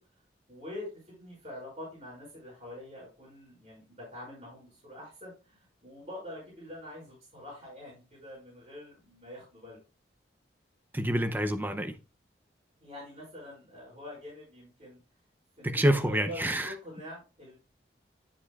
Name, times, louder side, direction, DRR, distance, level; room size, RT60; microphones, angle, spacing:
voice 1, 0.5-9.8 12.8-15.0 15.6-17.6, left 1 dB, 35° right, 5.5 m, -45 dB
voice 2, 10.9-11.9 15.6-16.7, right 1 dB, 10° right, 0.6 m, -27 dB
11.0 x 7.3 x 2.4 m
head